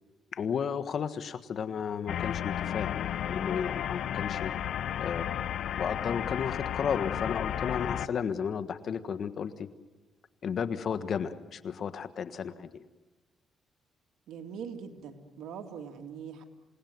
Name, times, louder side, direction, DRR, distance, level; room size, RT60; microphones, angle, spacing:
voice 1, 0.3-4.5 5.0-5.4 5.7-9.7 10.4-12.8, left 7 dB, 55° left, 11 dB, 1.5 m, -33 dB
sound 1, 2.1-8.1, left 10 dB, 75° left, 0.7 m, -33 dB
voice 2, 14.3-16.4, right 7 dB, 80° right, 5 dB, 2.5 m, -42 dB
28.5 x 18.5 x 9.5 m, 1.2 s
cardioid pair, 95°, 0 cm